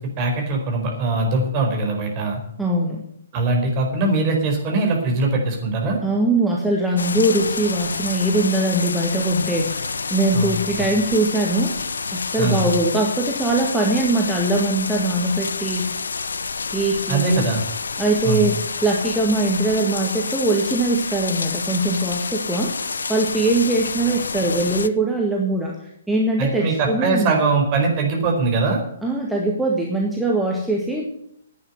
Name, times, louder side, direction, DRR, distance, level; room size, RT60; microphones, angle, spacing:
voice 1, 0.2-2.4 3.3-6.0 10.3-10.5 12.4-12.7 17.1-17.6 18.2-18.5 26.4-28.8, right 3 dB, 30° right, 1 dB, 4.6 m, -21 dB
voice 2, 2.6-3.0 6.0-11.8 12.1-15.9 16.7-17.4 18.0-22.8 23.1-27.3 29.0-31.1, right 2 dB, 5° right, -2 dB, 1.8 m, -21 dB
sound 1, 7.0-24.9, left 4 dB, 65° left, 0.6 m, -29 dB
11.0 x 9.2 x 8.0 m, 0.71 s
figure-of-eight pair, 125°, 0 cm